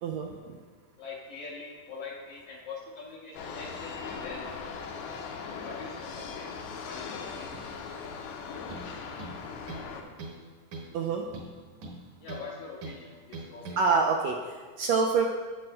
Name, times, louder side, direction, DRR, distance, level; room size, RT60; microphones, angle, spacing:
voice 1, 0.0-0.6 10.9-11.2 13.8-15.3, right 5 dB, 90° right, 1 dB, 1.5 m, -26 dB
voice 2, 1.0-4.5 5.6-7.7 12.2-13.8, left 4 dB, 65° left, -4 dB, 1.7 m, -43 dB
sound 1, 3.3-10.0, left 5 dB, 80° left, 2.1 m, -39 dB
sound 2, 8.7-8.9 9.2-9.9 10.2-10.4 10.7-11.0 11.3-12.5 12.8-13.0 13.3-13.8, right 2 dB, 70° right, 2.3 m, -41 dB
10.5 x 8.4 x 2.2 m, 1.5 s
omnidirectional pair, 3.6 m